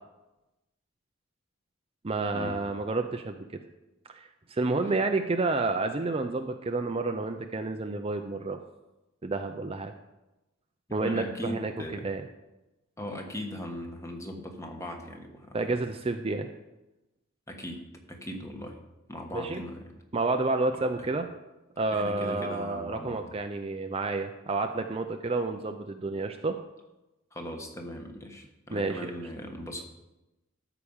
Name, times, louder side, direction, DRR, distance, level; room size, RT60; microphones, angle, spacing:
voice 1, 2.0-3.4 4.1-8.6 9.2-9.9 10.9-11.7 12.0-12.2 15.5-16.5 19.3-19.6 20.1-21.3 21.8-26.6 28.7-29.2, right 3 dB, 30° right, 6 dB, 0.5 m, -30 dB
voice 2, 10.9-12.1 13.0-15.6 17.5-18.8 19.1-19.9 21.0-21.1 21.9-23.3 27.3-29.8, equal, 15° left, 3 dB, 1.3 m, -39 dB
13.0 x 5.0 x 7.2 m, 1.0 s
head